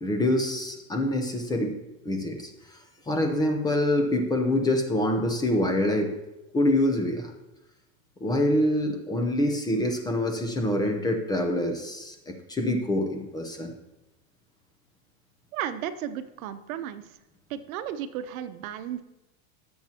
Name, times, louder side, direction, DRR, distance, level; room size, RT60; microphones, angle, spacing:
voice 1, 0.0-1.8 2.0-2.5 3.1-6.1 6.5-7.3 8.2-13.7, left 1 dB, 10° left, 4 dB, 0.6 m, -25 dB
voice 2, 15.5-17.0 17.5-19.0, right 10 dB, 85° right, 11 dB, 0.9 m, -34 dB
17.0 x 7.2 x 2.9 m, 0.96 s
supercardioid pair, 160°, 41 cm